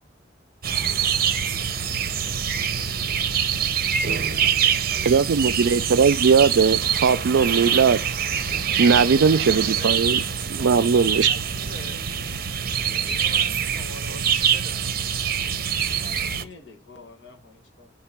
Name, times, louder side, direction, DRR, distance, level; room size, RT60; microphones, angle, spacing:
sound 1, 0.6-16.4, right 8 dB, 55° right, 0.9 m, -24 dB
voice 1, 4.3-5.3 16.0-17.9, left 4 dB, 75° left, 1.8 m, -47 dB
voice 2, 5.0-8.0 8.8-10.2 10.5-11.3, right 5 dB, 85° right, 0.4 m, -19 dB
voice 3, 9.0-10.3 10.6-11.0 11.3-12.0 13.0-15.0 16.5-16.6, left 2 dB, 45° left, 1.8 m, -43 dB
11.0 x 4.4 x 5.9 m
head